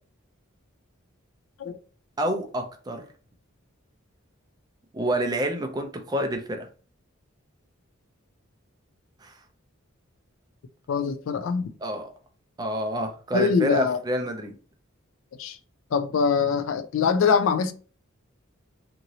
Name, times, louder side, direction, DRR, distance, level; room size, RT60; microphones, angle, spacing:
voice 1, 2.2-3.0 4.9-6.7 9.2-9.3 11.8-12.1 12.6-14.5, right 1 dB, 20° right, 0.4 m, -28 dB
voice 2, 10.9-11.7 13.3-14.0 15.4-15.6 15.9-17.7, left 6 dB, 70° left, 0.3 m, -23 dB
2.9 x 2.6 x 2.7 m
head